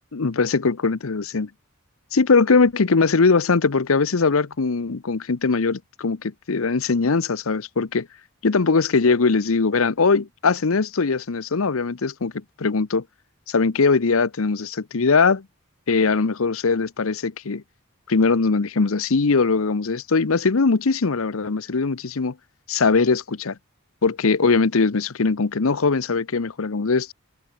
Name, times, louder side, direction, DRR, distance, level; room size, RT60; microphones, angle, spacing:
voice 1, 0.1-1.5 2.1-8.1 8.4-13.0 13.5-15.4 15.9-17.6 18.1-22.3 22.7-23.6 24.0-27.1, left 4 dB, 80° left, 0.8 m, -21 dB
head